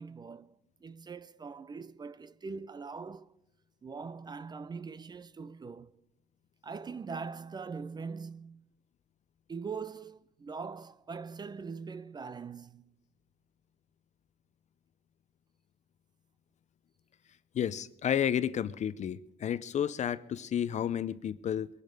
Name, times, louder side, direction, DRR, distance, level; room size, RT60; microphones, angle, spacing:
voice 1, 0.0-3.4 3.8-6.0 6.6-8.7 9.5-12.9, right 5 dB, 25° right, 0.5 m, -42 dB
voice 2, 17.5-21.7, left 9 dB, 45° left, 0.6 m, -31 dB
22.5 x 11.0 x 5.2 m
cardioid pair, 110°, 17 cm